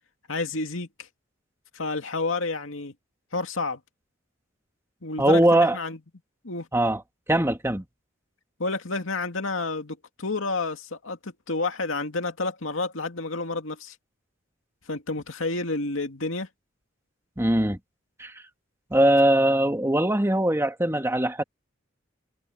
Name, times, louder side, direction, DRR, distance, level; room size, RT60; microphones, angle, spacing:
voice 1, 0.3-1.1 1.7-2.9 3.3-3.8 5.0-6.0 6.4-6.7 8.6-14.0 14.9-16.5, left 3 dB, 80° left, 2.4 m, -30 dB
voice 2, 5.2-5.8 6.7-7.0 7.3-7.8 17.4-17.8 18.2-18.4 18.9-21.4, right 1 dB, 15° right, 1.9 m, -21 dB
head